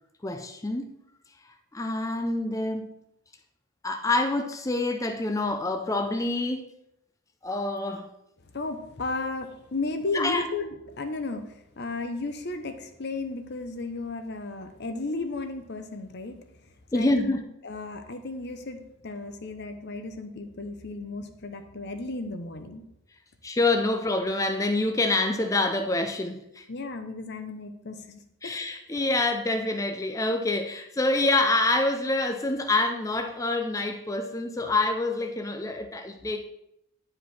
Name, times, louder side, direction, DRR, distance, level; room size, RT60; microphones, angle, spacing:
voice 1, 0.2-1.0 1.7-2.9 3.8-6.7 7.4-8.1 10.1-10.4 16.9-17.4 23.4-26.7 28.4-36.4, left 2 dB, 15° left, 0.4 m, -26 dB
voice 2, 8.5-16.4 16.9-22.8 26.7-28.5, left 3 dB, 50° left, 0.8 m, -34 dB
10.0 x 5.0 x 4.3 m
head